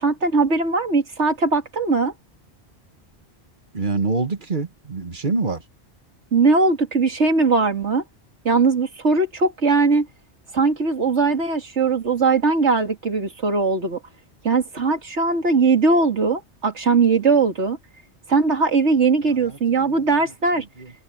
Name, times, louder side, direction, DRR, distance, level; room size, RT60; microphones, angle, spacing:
voice 1, 0.0-2.1 6.3-8.0 8.4-10.1 10.5-14.0 14.4-17.8 18.3-20.6, right 4 dB, 90° right, 2.7 m, -20 dB
voice 2, 3.7-5.6 19.5-20.1 20.8-20.9, right 3 dB, 45° right, 1.6 m, -26 dB
omnidirectional pair, 1.1 m